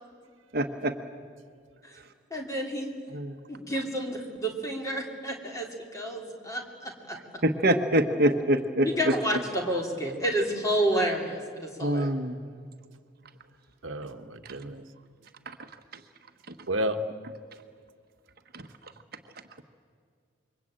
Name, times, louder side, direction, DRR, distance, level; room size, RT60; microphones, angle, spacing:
voice 1, 0.5-0.9 3.1-3.4 7.4-9.1 11.8-12.4 14.5-14.6 15.5-15.6 16.5-16.6 18.5-18.7, right 1 dB, 50° right, 6 dB, 1.2 m, -25 dB
voice 2, 2.3-2.9 3.5-7.2 8.8-12.1, right 1 dB, 15° left, 1 dB, 3.1 m, -30 dB
voice 3, 13.8-14.8 16.7-17.0, right 1 dB, 75° right, 7 dB, 1.3 m, -31 dB
27.0 x 23.5 x 8.9 m, 2.1 s
head